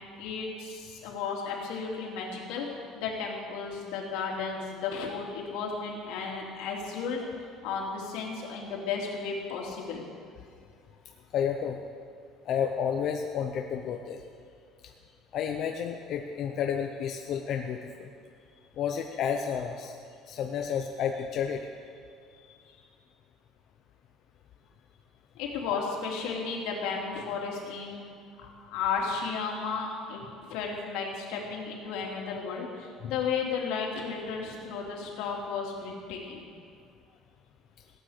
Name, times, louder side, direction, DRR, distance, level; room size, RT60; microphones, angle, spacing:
voice 1, 0.2-2.7 2.9-7.2 7.6-10.0 25.3-28.0 28.5-36.5, left 5 dB, 80° left, -2 dB, 3.2 m, -34 dB
voice 2, 11.3-11.8 12.5-14.2 14.8-14.9 15.3-18.1 18.8-19.9 20.3-21.7 22.4-22.8 33.0-33.1, left 7 dB, 40° left, 3 dB, 0.7 m, -31 dB
17.5 x 9.2 x 6.7 m, 2.4 s
cardioid pair, 175°, 0 cm